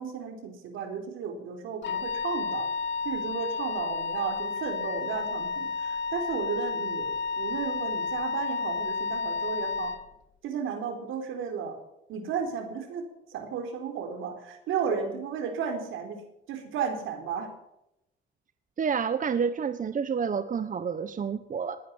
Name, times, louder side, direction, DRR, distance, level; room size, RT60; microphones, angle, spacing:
voice 1, 0.0-2.7 3.0-9.9 10.4-11.8 12.1-16.2 16.5-17.5, right 6 dB, 85° right, 5 dB, 4.1 m, -34 dB
Wind instrument woodwind instrument, 1.8-10.0, left 4 dB, 70° left, 1.6 m, -31 dB
voice 2, 18.8-21.8, right 6 dB, 40° right, 12 dB, 1.1 m, -29 dB
20.0 x 9.5 x 7.2 m, 0.84 s
cardioid pair, 90°, 20 cm